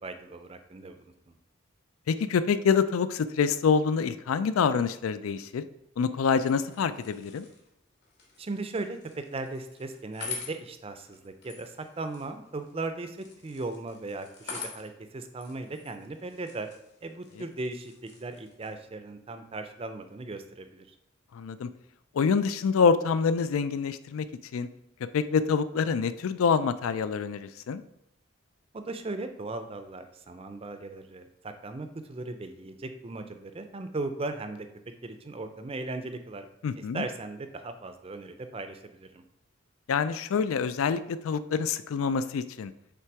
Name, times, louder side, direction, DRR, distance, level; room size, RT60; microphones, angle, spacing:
voice 1, 0.0-1.3 8.4-16.7 17.0-20.9 28.7-34.7 35.0-36.5 36.8-39.2, right 2 dB, 30° right, 8 dB, 0.4 m, -37 dB
voice 2, 2.1-5.7 6.0-7.5 21.3-21.7 22.2-24.2 24.5-24.7 25.1-27.8 36.6-37.0 39.9-42.7, left 6 dB, 85° left, 13 dB, 0.4 m, -26 dB
sound 1, 6.3-18.7, left 5 dB, 55° left, 1.4 m, -46 dB
6.0 x 3.3 x 4.7 m, 0.80 s
head